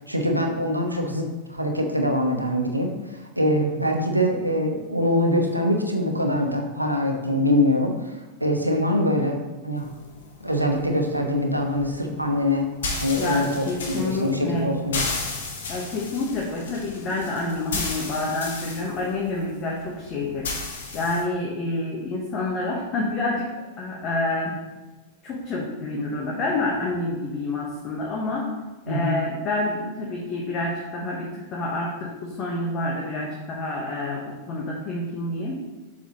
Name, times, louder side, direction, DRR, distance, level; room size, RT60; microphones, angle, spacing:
voice 1, 0.1-9.9 10.4-12.7 13.0-15.0 28.9-29.2, left 1 dB, 85° right, 3 dB, 0.9 m, -24 dB
sound 1, 9.8-21.2, left 3 dB, 60° left, 1.4 m, -34 dB
voice 2, 13.2-14.7 15.7-20.5 20.9-23.5 23.8-24.6 25.2-28.5 28.9-35.6, left 2 dB, 35° left, -2 dB, 1.2 m, -28 dB
7.2 x 6.0 x 3.0 m, 1.2 s
figure-of-eight pair, 90°, 0 cm